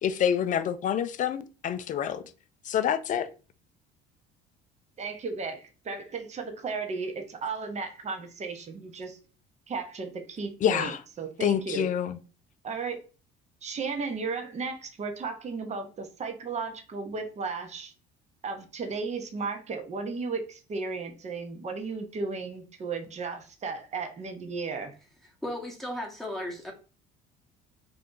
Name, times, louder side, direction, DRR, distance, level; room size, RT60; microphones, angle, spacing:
voice 1, 0.0-2.2 2.7-3.3 10.6-11.0 11.4-12.2, left 9 dB, 40° left, 0.4 m, -27 dB
voice 2, 5.0-9.2 9.7-11.9 12.6-13.0 13.6-17.9 18.4-24.9, right 4 dB, 35° right, 0.8 m, -35 dB
voice 3, 25.4-26.7, left 1 dB, ahead, 1.0 m, -35 dB
2.7 x 2.3 x 3.7 m
supercardioid pair, 75°, 20 cm